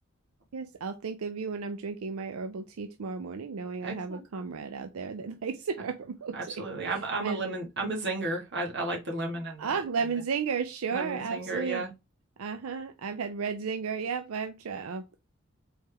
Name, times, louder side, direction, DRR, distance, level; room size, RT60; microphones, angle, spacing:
voice 1, 0.5-6.5 7.2-7.4 9.6-11.8 12.4-15.2, right 5 dB, 90° right, 0.5 m, -33 dB
voice 2, 3.8-4.2 6.3-9.8 10.9-11.9, right 2 dB, 55° right, 1.6 m, -33 dB
4.3 x 3.4 x 3.3 m
head